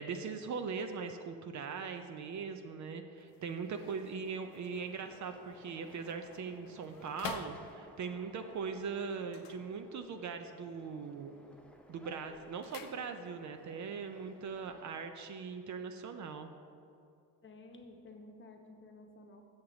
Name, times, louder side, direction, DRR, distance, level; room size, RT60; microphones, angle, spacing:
voice 1, 0.0-11.3 11.9-16.5, right 5 dB, 45° right, 7 dB, 0.5 m, -40 dB
sound 1, 3.1-8.2 9.2-10.3 10.6-11.1 11.5-13.6 13.8-13.9, left 6 dB, 55° left, 0.7 m, -50 dB
sound 2, 5.0-15.1, left 1 dB, 5° left, 0.6 m, -60 dB
voice 2, 17.4-19.4, left 2 dB, 30° left, 3 dB, 0.9 m, -53 dB
7.1 x 6.6 x 3.8 m, 2.5 s
supercardioid pair, 80°, 40 cm